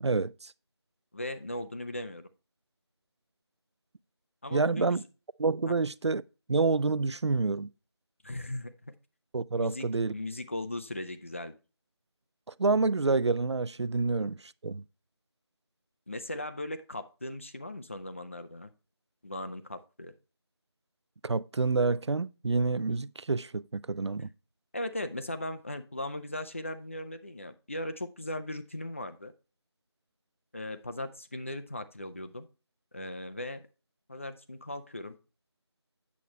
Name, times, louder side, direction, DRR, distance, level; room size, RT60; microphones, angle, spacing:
voice 1, 0.0-0.5 4.5-5.0 5.4-6.2 6.5-7.7 9.3-10.1 12.6-14.8 21.2-24.3, right 3 dB, 90° right, 0.4 m, -28 dB
voice 2, 1.1-2.3 4.4-5.1 5.7-5.8 8.2-8.9 9.6-11.6 16.1-18.7 19.2-20.1 24.7-29.3 30.5-32.5 32.9-33.6 34.1-35.1, left 1 dB, 30° left, 0.6 m, -38 dB
8.5 x 7.0 x 3.0 m
figure-of-eight pair, 170°, 14 cm